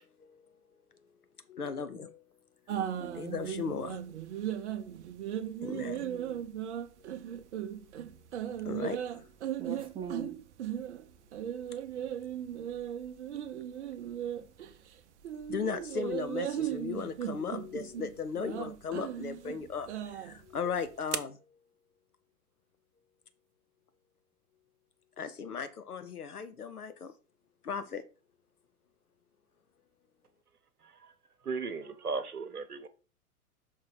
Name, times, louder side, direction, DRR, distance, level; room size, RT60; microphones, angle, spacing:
voice 1, 1.5-2.2 3.1-4.0 5.6-6.2 8.6-9.0 15.5-19.9 20.2-21.4 25.2-27.1 27.6-28.0, left 6 dB, 80° left, 0.8 m, -36 dB
sound 1, 2.7-14.9 15.2-21.2, right 10 dB, 50° right, 0.7 m, -37 dB
voice 2, 2.8-3.4 5.8-6.5 9.6-10.3, right 7 dB, 10° right, 0.8 m, -42 dB
voice 3, 31.4-32.9, right 4 dB, 85° right, 0.9 m, -36 dB
6.2 x 4.6 x 3.8 m
figure-of-eight pair, 105°, 45 cm